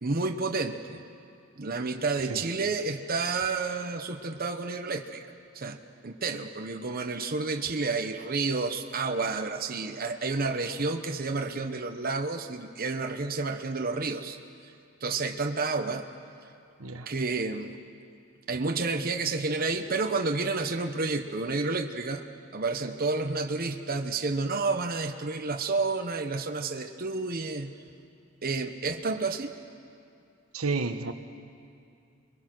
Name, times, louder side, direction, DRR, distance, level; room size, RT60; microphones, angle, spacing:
voice 1, 0.0-1.0 1.6-5.2 5.5-5.8 6.0-14.4 15.0-16.1 17.1-17.8 18.5-22.2 22.5-27.7 28.4-29.5, right 3 dB, 45° right, 5 dB, 1.0 m, -30 dB
voice 2, 30.5-31.1, right 3 dB, 90° right, 6 dB, 1.3 m, -30 dB
27.5 x 22.5 x 6.2 m, 2.6 s
head